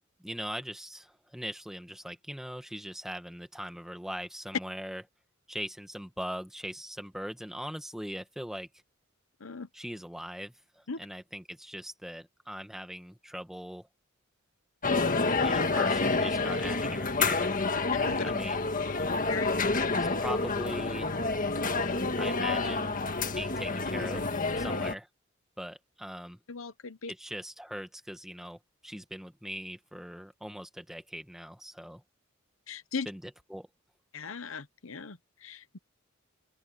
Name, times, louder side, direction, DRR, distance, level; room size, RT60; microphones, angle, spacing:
voice 1, 0.2-5.0 5.5-8.7 9.7-13.9 15.3-17.5 18.2-18.7 19.9-21.1 22.2-23.0 23.3-24.3 24.6-25.1 25.6-26.4 27.1-32.0 33.0-33.2 33.5-33.7, equal, ahead, 1.7 m, -40 dB
sound 1, 14.8-24.9, left 3 dB, 40° left, 1.7 m, -28 dB
voice 2, 19.3-19.9 24.5-24.7 26.5-27.1 32.7-33.1 34.1-35.8, left 5 dB, 70° left, 1.0 m, -39 dB
open air
head